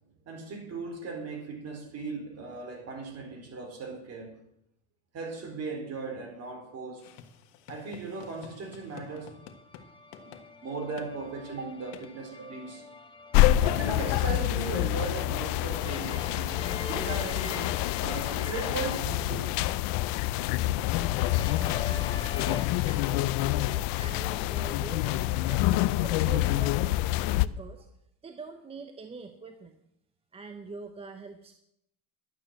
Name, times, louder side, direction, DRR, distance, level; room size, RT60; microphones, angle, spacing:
voice 1, 0.3-4.4 5.1-7.1 7.7-9.4 10.2-10.3 10.6-12.8 13.6-16.6 16.9-19.4, right 4 dB, 35° right, 4.2 m, -37 dB
sound 1, 7.0-9.9 10.1-10.4 11.0-11.1 11.9-12.1, left 9 dB, 80° left, 1.8 m, -49 dB
sound 2, 8.8-14.5 15.6-20.5 20.8-22.6, left 3 dB, 10° left, 1.3 m, -44 dB
sound 3, 13.3-27.5, left 15 dB, 50° left, 0.5 m, -27 dB
voice 2, 22.4-27.9 28.2-29.8 30.3-31.6, right 4 dB, 15° right, 0.7 m, -44 dB
12.0 x 8.7 x 7.5 m
supercardioid pair, 140°, 46 cm